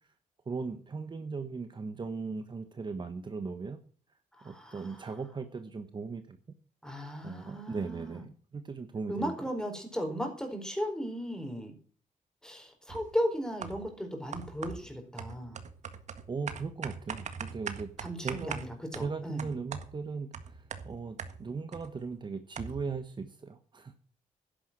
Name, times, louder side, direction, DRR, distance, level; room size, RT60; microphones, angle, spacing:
voice 1, 0.4-3.8 4.4-6.4 7.2-9.3 16.3-17.9 18.2-18.6 18.9-23.9, right 4 dB, 35° right, 8 dB, 1.3 m, -38 dB
voice 2, 4.3-5.1 6.8-8.2 9.1-11.8 12.4-15.6 18.0-19.5, equal, 5° left, 5 dB, 4.7 m, -36 dB
sound 1, 12.9-13.2 13.6-14.0 14.3-21.9 22.2-22.3 22.6-23.0, right 6 dB, 65° right, 1.7 m, -42 dB
11.5 x 10.5 x 6.2 m, 0.43 s
cardioid pair, 110°, 13 cm